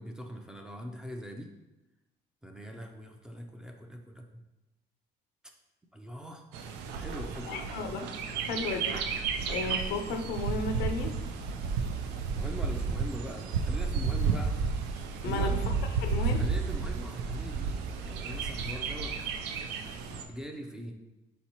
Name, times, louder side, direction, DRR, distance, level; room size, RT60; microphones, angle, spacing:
voice 1, 0.0-1.5 2.4-4.4 5.9-6.5 6.9-7.7 12.3-14.7 15.2-15.7 16.1-19.2 19.7-20.9, equal, 5° right, 2 dB, 0.5 m, -42 dB
Bird, 6.5-20.2, right 5 dB, 85° right, 0.4 m, -32 dB
voice 2, 7.5-8.1 8.4-9.0 9.5-11.1 15.2-15.6 16.0-16.4, left 3 dB, 85° left, 5 dB, 0.6 m, -34 dB
4.3 x 3.9 x 2.9 m, 0.99 s
cardioid pair, 110°, 17 cm